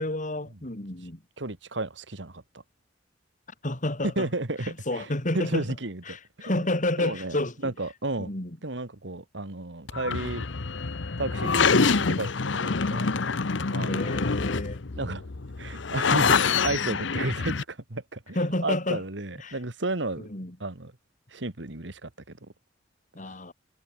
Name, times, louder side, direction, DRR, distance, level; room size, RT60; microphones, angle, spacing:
voice 1, 0.0-1.2 3.6-4.3 4.6-5.7 6.1-7.7 8.2-8.6 13.9-14.8 18.3-19.0 19.4-19.6 20.2-20.6 23.1-23.5, left 1 dB, 45° left, 3.0 m, -30 dB
voice 2, 1.4-2.4 4.2-5.1 5.3-6.7 7.0-7.4 7.6-8.3 8.6-10.4 11.2-13.1 13.7-14.2 15.0-15.3 15.6-18.4 18.6-20.3 20.6-20.9 21.3-22.4, right 2 dB, 70° right, 2.1 m, -33 dB
sound 1, 9.9-17.6, left 5 dB, 80° left, 0.9 m, -26 dB
head